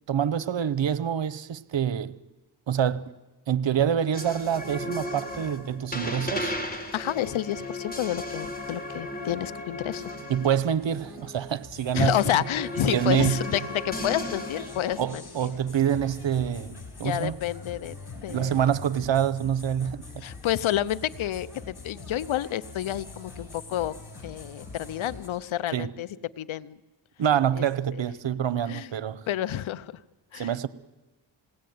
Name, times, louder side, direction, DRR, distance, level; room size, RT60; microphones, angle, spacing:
voice 1, 0.1-2.2 2.7-3.1 3.5-6.6 10.3-12.2 12.8-13.4 15.0-17.4 18.3-20.2 25.7-25.9 27.2-29.3 30.3-30.7, right 9 dB, 65° right, 1.0 m, -26 dB
sound 1, 4.1-11.4 11.9-15.0, left 1 dB, 20° left, 4.5 m, -35 dB
voice 2, 6.9-10.2 11.9-15.5 17.0-17.9 18.2-18.5 20.2-23.9 24.2-26.1 26.4-26.8 27.6-27.7 28.7-28.9 29.3-29.9 30.3-30.5, left 12 dB, 70° left, 0.7 m, -29 dB
sound 2, 10.7-25.3, left 3 dB, 50° left, 6.0 m, -44 dB
21.0 x 17.0 x 9.4 m
cardioid pair, 45°, 49 cm